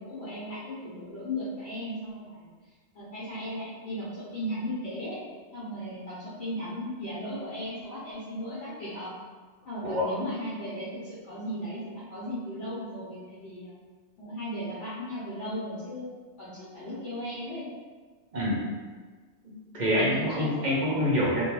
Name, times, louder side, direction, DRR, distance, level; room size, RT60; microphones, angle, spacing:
voice 1, 0.0-2.5 2.9-5.2 5.5-9.1 9.6-13.7 14.2-17.7 19.9-20.6, equal, 70° left, -9 dB, 0.9 m, -36 dB
voice 2, 19.4-21.4, left 1 dB, 50° right, -5 dB, 0.6 m, -26 dB
2.2 x 2.2 x 3.0 m, 1.4 s
omnidirectional pair, 1.2 m